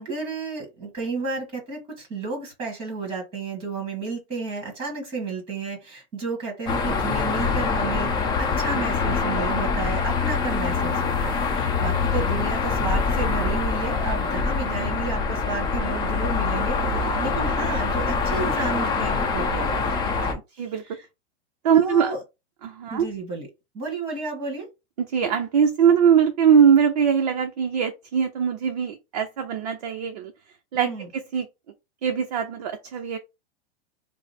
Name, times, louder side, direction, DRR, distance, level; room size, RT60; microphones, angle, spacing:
voice 1, 0.0-21.1 21.7-22.2 22.9-23.5 23.7-24.7 30.8-31.1, right 4 dB, 15° right, 1.3 m, -32 dB
sound 1, 6.7-20.3, left 4 dB, 20° left, 0.8 m, -24 dB
voice 2, 21.6-22.1 22.6-23.1 25.1-30.3 30.7-31.5 32.0-33.2, right 7 dB, 40° right, 0.5 m, -21 dB
4.8 x 2.0 x 4.1 m
supercardioid pair, 180°, 33 cm